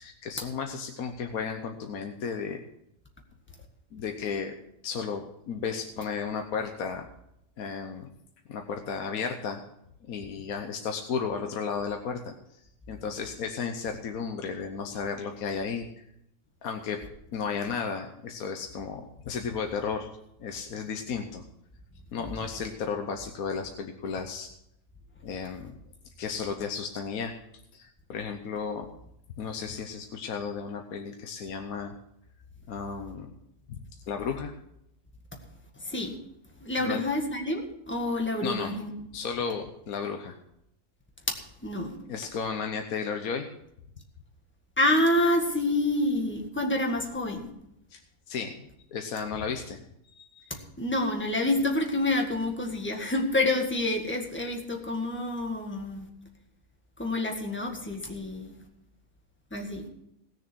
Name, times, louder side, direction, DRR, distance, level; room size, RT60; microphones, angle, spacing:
voice 1, 0.0-2.6 3.9-4.6 4.8-7.1 7.6-8.1 8.5-9.6 10.1-12.3 12.9-15.9 16.6-17.0 17.3-20.1 20.4-21.4 22.1-24.5 25.2-25.8 26.0-27.4 27.7-28.9 29.4-31.9 32.7-33.3 33.7-33.8 34.1-34.5 36.8-37.0 38.4-38.8 39.1-40.4 42.1-43.5 47.9-48.0 48.3-50.5, left 6 dB, 70° left, 5 dB, 1.3 m, -34 dB
voice 2, 35.8-36.2 36.6-38.9 41.3-41.4 41.6-41.9 44.8-47.5 50.5-56.1 57.0-58.5 59.5-59.8, left 1 dB, 5° left, 2 dB, 1.7 m, -28 dB
18.0 x 6.9 x 6.1 m, 0.80 s
omnidirectional pair, 1.6 m